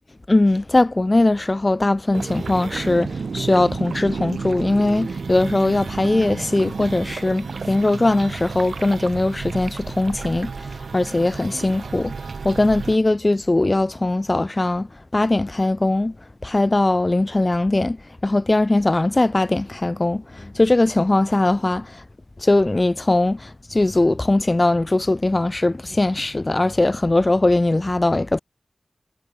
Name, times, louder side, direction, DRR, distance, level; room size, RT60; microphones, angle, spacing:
voice 1, 0.3-16.2 16.4-22.0 22.4-28.4, left 2 dB, 35° left, 0.5 m, -20 dB
sound 1, 2.1-13.0, right 5 dB, 80° right, 0.6 m, -31 dB
cardioid pair, 40°, 0 cm